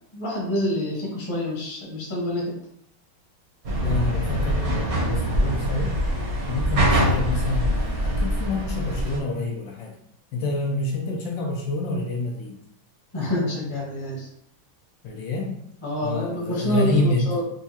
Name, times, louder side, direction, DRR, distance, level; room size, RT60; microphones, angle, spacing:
voice 1, 0.1-2.5 13.1-14.3 15.8-17.4, equal, 20° left, -3 dB, 0.7 m, -27 dB
sound 1, 3.6-9.2, equal, 50° right, 0.9 m, -24 dB
voice 2, 3.8-6.0 6.5-9.9 10.3-12.6 15.0-15.6 16.0-17.3, left 2 dB, 75° left, 0 dB, 1.2 m, -27 dB
4.4 x 2.3 x 2.8 m, 0.71 s
omnidirectional pair, 2.2 m